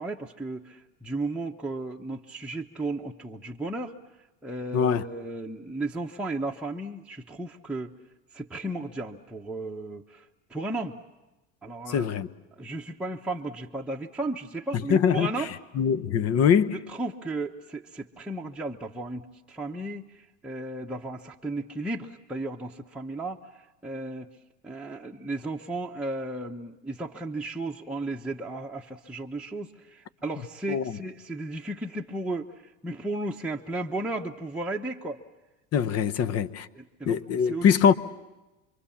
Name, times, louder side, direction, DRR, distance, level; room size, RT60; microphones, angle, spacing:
voice 1, 0.0-3.9 4.4-7.9 8.3-11.0 11.6-12.1 12.6-15.5 16.7-24.3 24.6-32.5 32.8-35.2 36.3-36.4 36.7-37.7, right 2 dB, 5° right, 1.0 m, -34 dB
voice 2, 4.7-5.0 11.9-12.3 14.9-15.3 15.8-16.7 30.7-30.8 35.7-36.7 37.1-37.9, left 7 dB, 45° left, 1.0 m, -22 dB
27.0 x 23.5 x 7.2 m
supercardioid pair, 100°, 35 cm